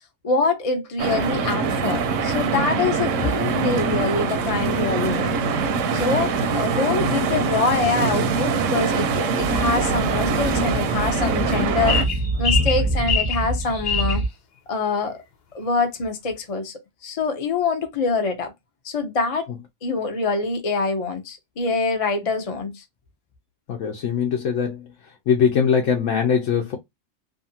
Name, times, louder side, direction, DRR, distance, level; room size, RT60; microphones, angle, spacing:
voice 1, 0.2-5.4 5.9-12.0 12.4-14.2 14.7-15.2 15.5-16.7 17.0-18.5 18.8-19.5 19.8-22.8, left 4 dB, 40° left, 0.6 m, -25 dB
sound 1, 1.0-12.0, right 4 dB, 85° right, 0.9 m, -23 dB
Speech / Wind, 9.3-14.3, right 1 dB, 10° left, 0.9 m, -26 dB
sound 2, 11.9-14.2, left 7 dB, 55° left, 0.9 m, -25 dB
voice 2, 23.7-26.8, left 7 dB, 80° left, 1.0 m, -22 dB
2.7 x 2.4 x 2.7 m
omnidirectional pair, 1.3 m